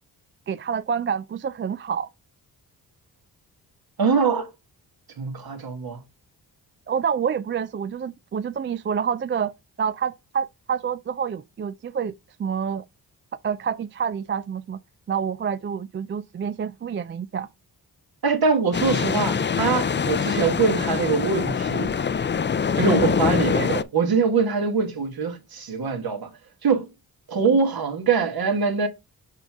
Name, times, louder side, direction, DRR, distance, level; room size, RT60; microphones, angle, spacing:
voice 1, 0.5-2.1 6.9-9.5 9.8-12.8 13.4-14.8 15.1-17.5 22.9-23.2, right 7 dB, 30° right, 0.3 m, -28 dB
voice 2, 4.0-4.5 5.2-6.0 18.2-22.0 22.7-26.3 26.6-26.9 27.3-28.9, right 5 dB, 60° right, 1.5 m, -23 dB
sound 1, 18.7-23.8, left 6 dB, 25° left, 0.5 m, -24 dB
6.7 x 4.5 x 3.5 m
cardioid pair, 70°, 41 cm